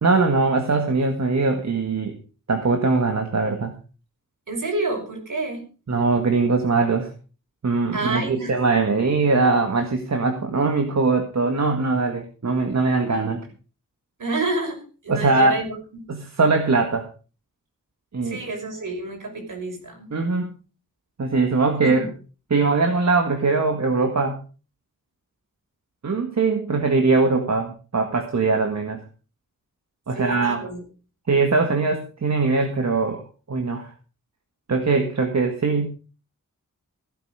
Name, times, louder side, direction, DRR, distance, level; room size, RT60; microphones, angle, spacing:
voice 1, 0.0-2.2 2.5-3.7 5.9-7.1 7.6-13.4 15.1-15.5 16.1-17.1 18.1-18.4 20.1-20.5 21.2-22.1 22.5-24.4 26.0-29.0 30.1-30.6 31.3-33.2 33.5-33.9 34.7-35.9, right 3 dB, 55° right, 4 dB, 1.9 m, -21 dB
voice 2, 4.5-5.6 7.9-8.5 14.2-15.8 18.2-20.1 21.8-22.1 30.1-30.8, right 2 dB, 70° right, 3 dB, 5.6 m, -28 dB
16.0 x 9.1 x 5.0 m, 0.36 s
wide cardioid pair, 130°, 32 cm